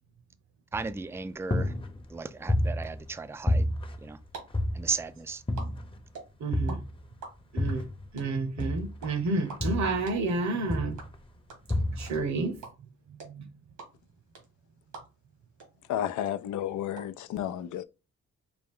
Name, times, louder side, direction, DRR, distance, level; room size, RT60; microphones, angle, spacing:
sound 1, 0.7-1.2 1.5-3.2 3.5-5.1 5.5-6.0 6.5-8.1 8.6-10.3 10.7-11.2 11.7-12.3, left 1 dB, 20° left, 0.7 m, -30 dB
voice 1, 0.7-1.7 2.1-3.7 4.0-4.2 4.7-5.4, right 4 dB, 10° right, 0.4 m, -35 dB
sound 2, 4.2-4.4 4.6-6.7 7.0-15.3 15.6-15.7 15.9-17.0, right 5 dB, 85° right, 1.7 m, -45 dB
voice 2, 6.4-6.8 7.5-7.8 8.1-11.0 12.0-12.6 13.3-13.4, right 3 dB, 70° right, 1.0 m, -30 dB
voice 3, 15.9-17.8, left 11 dB, 80° left, 0.5 m, -32 dB
4.9 x 2.2 x 3.7 m
cardioid pair, 75°, 30 cm